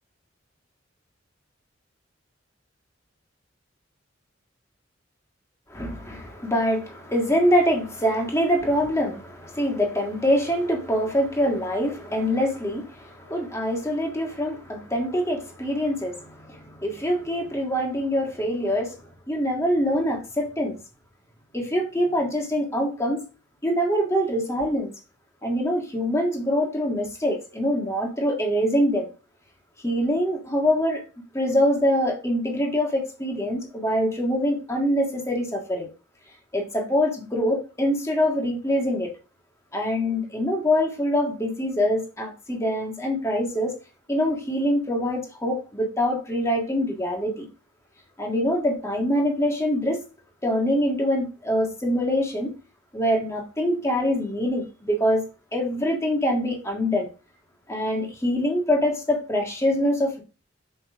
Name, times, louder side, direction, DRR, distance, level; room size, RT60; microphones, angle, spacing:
voice 1, 5.7-19.0 19.3-20.8 21.5-23.2 23.6-24.9 25.4-29.1 29.8-31.0 31.3-35.9 36.5-39.1 39.7-43.7 44.1-47.5 48.2-50.0 50.4-52.5 52.9-55.2 55.5-57.1 57.7-60.2, equal, 15° left, 1.7 m, -24 dB
6.8 x 5.5 x 3.5 m
head